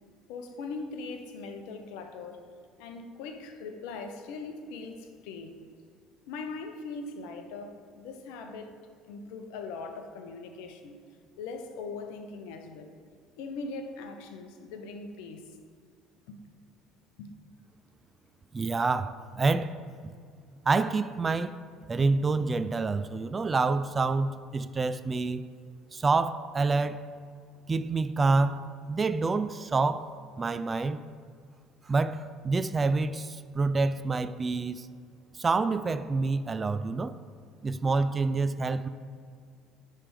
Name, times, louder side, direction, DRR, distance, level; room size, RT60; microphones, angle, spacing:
voice 1, 0.3-2.4 2.8-5.6 6.3-8.8 9.1-11.0 11.4-12.9 13.4-15.5 16.3-16.4 17.2-17.3, left 4 dB, 65° left, 0.7 m, -40 dB
voice 2, 18.5-19.7 20.0-20.1 20.7-21.6 21.9-25.5 25.9-27.0 27.7-31.0 31.9-34.9 35.3-37.2 37.6-38.9, right 3 dB, 25° right, 0.3 m, -27 dB
9.8 x 3.3 x 4.9 m
figure-of-eight pair, 60°, 0 cm